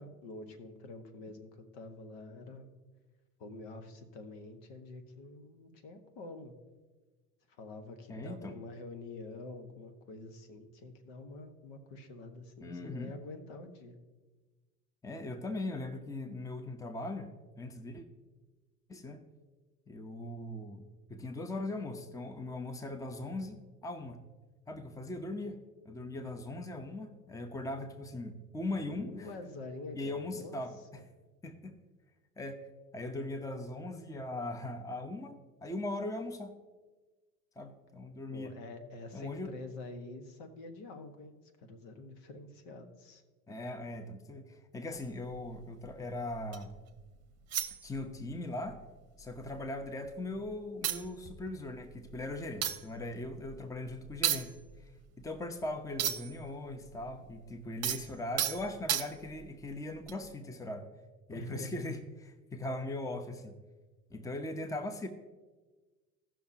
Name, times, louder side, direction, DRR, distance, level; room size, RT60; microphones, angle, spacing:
voice 1, 0.0-2.7 3.4-6.5 7.5-14.0 26.2-26.4 28.9-30.6 30.9-31.0 38.3-43.2 61.3-61.8, left 2 dB, 60° left, 7 dB, 1.5 m, -47 dB
voice 2, 8.1-8.5 12.6-13.1 15.0-18.1 18.9-19.2 19.9-20.8 21.1-24.2 24.7-29.3 29.9-31.0 31.4-31.7 32.4-32.6 32.9-36.5 37.6-38.6 39.1-39.5 43.5-46.7 47.8-48.8 49.2-54.5 55.2-60.9 61.3-63.6 64.1-65.1, left 2 dB, 5° left, 7 dB, 0.8 m, -40 dB
sound 1, 44.9-46.8 47.5-48.4 48.7-48.9 49.2-50.1 50.5-50.6 50.8-56.5 56.7-59.5 60.0-60.3, right 10 dB, 35° right, 0.9 m, -36 dB
17.0 x 6.0 x 2.8 m, 1.3 s
hypercardioid pair, 75°, 45 cm